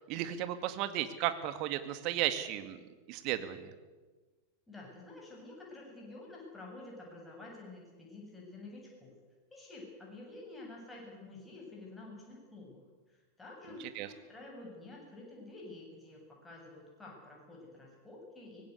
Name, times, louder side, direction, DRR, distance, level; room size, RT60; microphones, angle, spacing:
voice 1, 0.1-2.8 3.1-3.7 14.0-14.1, right 12 dB, 40° right, 10 dB, 2.0 m, -34 dB
voice 2, 4.7-9.1 9.5-12.8 13.1-18.6, left 2 dB, 10° left, -2 dB, 7.9 m, -49 dB
24.0 x 19.0 x 8.3 m, 1.3 s
figure-of-eight pair, 90°, 0 cm